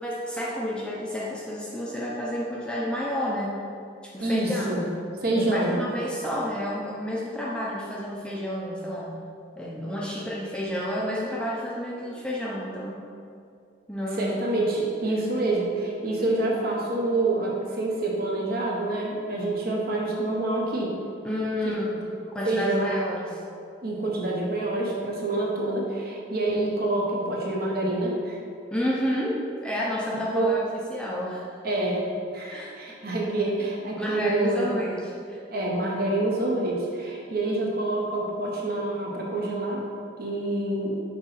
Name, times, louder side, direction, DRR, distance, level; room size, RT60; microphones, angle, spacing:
voice 1, 0.0-3.6 4.0-5.0 5.3-9.1 9.6-13.0 13.9-14.3 15.3-15.4 21.2-22.0 22.3-23.4 28.7-31.5 32.5-32.7 34.0-35.4, left 1 dB, 5° left, -5 dB, 0.6 m, -30 dB
voice 2, 4.2-4.8 5.2-5.8 14.2-20.9 22.2-22.8 23.8-28.4 30.3-30.5 31.6-32.0 32.3-34.7 35.5-39.8 40.2-41.0, right 2 dB, 50° right, -2 dB, 1.0 m, -27 dB
6.1 x 4.0 x 4.1 m, 2.4 s
head